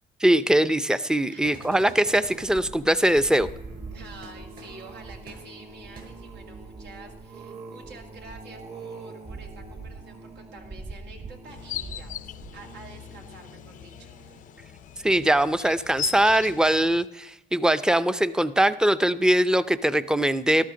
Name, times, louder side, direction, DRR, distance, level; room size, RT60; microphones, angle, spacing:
voice 1, 0.2-3.5 15.0-20.7, right 1 dB, 5° right, 13 dB, 0.5 m, -21 dB
voice 2, 1.3-1.6 3.9-14.5, right 3 dB, 85° right, 2 dB, 2.3 m, -48 dB
sound 1, 1.4-2.6 4.2-4.3 4.6-4.7 5.3-5.4 5.9-6.0, right 4 dB, 65° right, 5.6 m, -45 dB
sound 2, 2.0-15.4 15.9-16.2 16.5-16.6, right 3 dB, 40° right, 1.3 m, -43 dB
sound 3, 11.5-17.1, left 12 dB, 50° left, 0.4 m, -39 dB
13.5 x 12.5 x 3.8 m, 0.91 s
cardioid pair, 110°, 17 cm